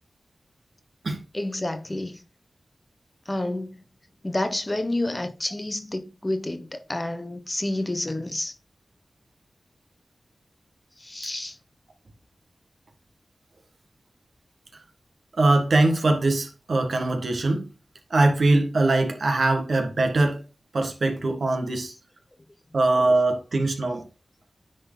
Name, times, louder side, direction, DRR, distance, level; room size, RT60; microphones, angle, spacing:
voice 1, 1.3-2.2 3.3-3.8 4.2-8.5 11.0-11.6, left 1 dB, 25° left, 1.0 m, -29 dB
voice 2, 15.4-17.6 18.1-20.4 20.7-21.9 22.7-24.0, right 2 dB, 70° right, 1.6 m, -22 dB
9.7 x 3.9 x 3.9 m
wide cardioid pair, 60°, 0 cm